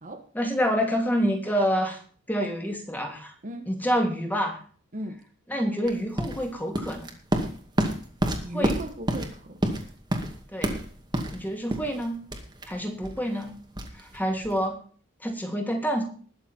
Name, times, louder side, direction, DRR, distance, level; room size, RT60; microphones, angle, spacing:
voice 1, 0.3-2.0 2.3-3.3 3.7-4.6 5.5-7.1 8.5-8.7 10.5-10.8 11.3-12.2 12.7-13.6 13.9-14.8 15.2-16.0, equal, 10° left, 2 dB, 3.0 m, -27 dB
voice 2, 4.9-5.2 8.4-9.9, right 1 dB, 40° right, 5 dB, 1.4 m, -37 dB
sound 1, 5.8-14.7, right 1 dB, 20° right, 2.2 m, -30 dB
20.5 x 7.2 x 4.5 m, 0.43 s
head